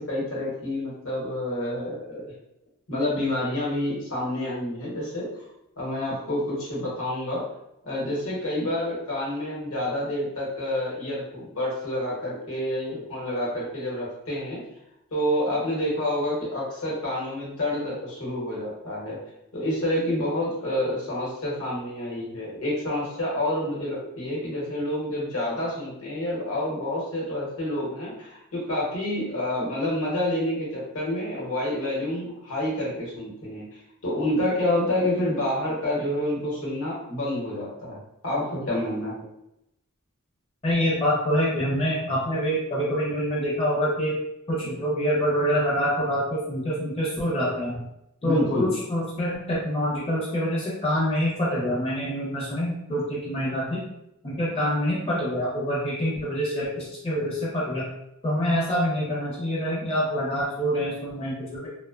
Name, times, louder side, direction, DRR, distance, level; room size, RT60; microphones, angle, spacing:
voice 1, 0.0-2.2 2.9-5.3 5.8-7.4 7.8-14.6 15.1-19.2 19.5-33.7 34.0-39.2 48.2-48.7, left 1 dB, 65° left, -5 dB, 0.9 m, -28 dB
voice 2, 40.6-44.2 44.5-47.8 48.2-53.8 54.2-57.9 58.2-61.7, equal, 25° left, -7 dB, 0.5 m, -26 dB
2.5 x 2.1 x 2.3 m, 0.84 s
head